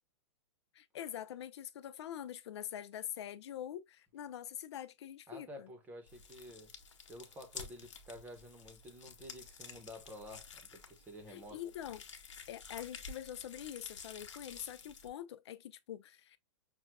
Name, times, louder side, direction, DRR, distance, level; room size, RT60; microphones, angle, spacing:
voice 1, 0.7-5.7 11.3-12.0 12.5-16.4, left 11 dB, 65° left, 0.5 m, -45 dB
voice 2, 5.3-6.7 7.1-11.6, equal, 10° right, 0.9 m, -51 dB
sound 1, 6.1-15.1, left 5 dB, 90° left, 1.1 m, -51 dB
6.0 x 2.3 x 2.2 m
hypercardioid pair, 155°, 15 cm